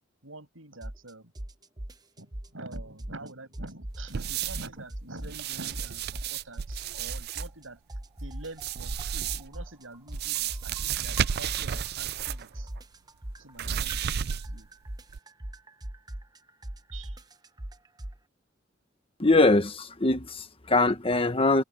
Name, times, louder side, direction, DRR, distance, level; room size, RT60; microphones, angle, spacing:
voice 1, 0.2-1.3 2.2-7.8 8.2-12.7 13.4-14.0 14.3-14.7 16.9-17.2, right 2 dB, 90° right, 7.5 m, -46 dB
sound 1, 0.8-1.1 1.4-3.3 3.5-5.5 5.7-7.6 7.9-12.0 12.3-18.2, right 1 dB, 20° right, 0.9 m, -39 dB
sound 2, 4.1-4.8 5.2-7.5 8.5-9.6 10.1-12.5 12.8-12.9 13.6-14.7 15.1-15.2, right 9 dB, 55° right, 0.4 m, -32 dB
voice 2, 19.2-21.6, left 2 dB, 30° left, 1.3 m, -22 dB
head